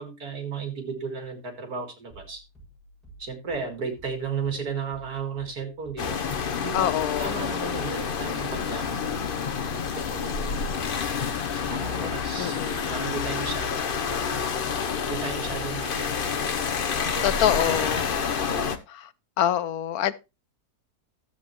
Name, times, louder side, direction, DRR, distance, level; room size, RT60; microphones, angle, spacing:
voice 1, 0.0-2.4 3.2-6.3 6.6-6.9 7.2-9.0 9.6-10.9 11.5-12.6 12.9-14.5 14.7-16.3 17.0-18.1 18.5-18.6, right 5 dB, 75° right, 2.6 m, -35 dB
sound 1, 2.1-9.6, right 2 dB, ahead, 7.4 m, -52 dB
sound 2, 6.0-18.8, left 6 dB, 45° left, 0.9 m, -28 dB
voice 2, 6.7-7.3 12.4-12.8 17.2-18.0 18.9-19.1 19.4-20.1, left 11 dB, 75° left, 1.1 m, -25 dB
12.5 x 8.0 x 3.1 m
omnidirectional pair, 1.6 m